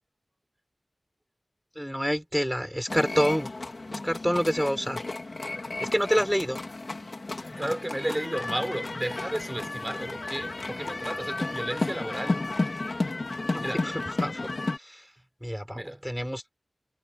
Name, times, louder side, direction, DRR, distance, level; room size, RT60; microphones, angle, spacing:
voice 1, 1.8-3.5 3.9-5.0 5.8-6.6 13.5-13.9 14.2-14.5 14.8-15.0 15.4-16.4, equal, ahead, 5.5 m, -27 dB
sound 1, 2.9-14.8, left 2 dB, 60° left, 3.6 m, -33 dB
voice 2, 7.5-12.5 13.6-13.9 15.7-16.0, right 1 dB, 15° right, 4.7 m, -33 dB
wide cardioid pair, 65°, 0 cm